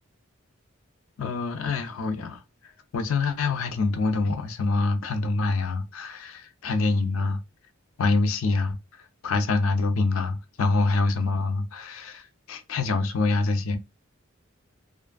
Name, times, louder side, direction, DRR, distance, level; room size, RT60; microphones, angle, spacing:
voice 1, 1.2-2.4 2.9-7.4 8.0-8.8 9.2-13.8, left 3 dB, 80° left, 0.5 m, -25 dB
2.6 x 2.4 x 2.2 m
head